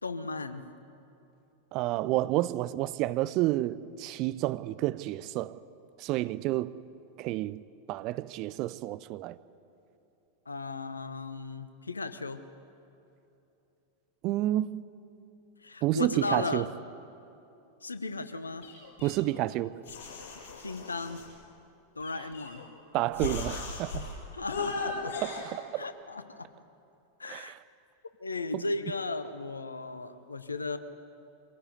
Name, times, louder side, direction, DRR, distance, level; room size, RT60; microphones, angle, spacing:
voice 1, 0.0-0.6 10.4-12.4 15.6-16.7 17.8-18.7 20.6-21.2 21.9-22.6 24.3-25.2 25.8-26.5 27.2-27.6 28.2-30.8, left 3 dB, 80° left, 1.1 m, -36 dB
voice 2, 1.7-5.6 6.0-6.8 7.2-7.6 7.9-9.4 14.2-14.8 15.8-16.7 19.0-19.7 22.9-24.1 25.2-25.9 27.3-27.6 28.5-28.6, right 16 dB, 40° right, 0.6 m, -30 dB
sound 1, 18.6-19.5 19.9-21.3 22.0-22.7 23.1-24.1 24.5-25.4, left 4 dB, 55° left, 7.8 m, -37 dB
24.0 x 17.0 x 9.8 m
figure-of-eight pair, 90°, 0 cm